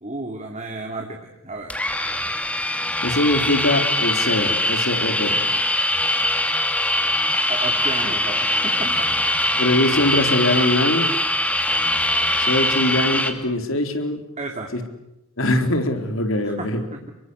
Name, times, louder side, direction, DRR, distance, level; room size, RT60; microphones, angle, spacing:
voice 1, 0.0-1.8 7.5-9.1 14.4-14.7 16.4-16.7, right 2 dB, 35° right, 3 dB, 2.7 m, -32 dB
sound 1, 1.7-13.3, left 1 dB, 5° left, 2.7 m, -22 dB
voice 2, 3.0-5.4 9.6-11.1 12.4-14.2 14.7-14.8 15.4-16.8, left 1 dB, 65° left, 7 dB, 4.1 m, -22 dB
29.5 x 23.0 x 8.0 m, 0.92 s
head